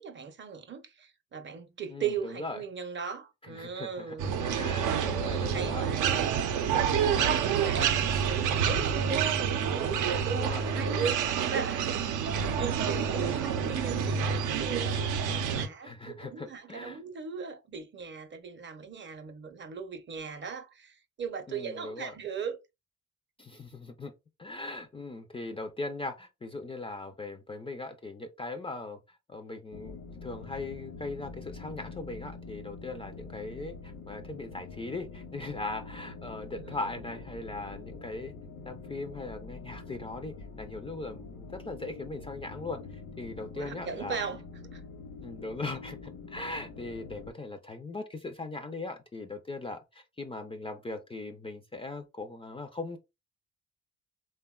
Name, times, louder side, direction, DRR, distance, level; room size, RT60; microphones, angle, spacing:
voice 1, 0.0-4.3 5.5-6.2 7.0-7.9 8.2-9.2 9.7-11.9 12.3-22.6 36.6-36.8 43.6-44.4 44.7-44.8, right 6 dB, 40° right, 0.6 m, -38 dB
voice 2, 1.9-2.6 3.4-4.2 4.4-5.9 7.1-7.4 7.8-7.9 10.3-11.0 15.8-17.0 21.5-22.2 23.4-24.1 24.4-38.3 38.7-44.2 45.2-53.0, left 2 dB, 20° left, 0.3 m, -39 dB
sound 1, 4.2-15.7, right 7 dB, 85° right, 0.5 m, -28 dB
sound 2, 29.7-47.3, left 4 dB, 75° left, 0.9 m, -45 dB
3.3 x 2.1 x 2.2 m
cardioid pair, 90°, 30 cm